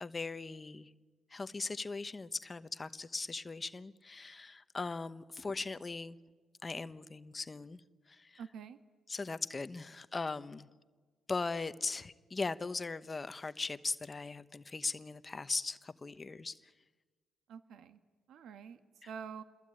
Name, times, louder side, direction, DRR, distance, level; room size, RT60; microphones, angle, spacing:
voice 1, 0.0-0.9 1.3-6.2 6.6-7.8 8.1-8.4 9.1-10.7 11.3-16.6, left 3 dB, 25° left, 1.0 m, -39 dB
voice 2, 8.4-8.8 17.5-18.0 18.3-19.4, right 7 dB, 75° right, 1.4 m, -47 dB
28.5 x 21.5 x 8.8 m
cardioid pair, 90°, 0 cm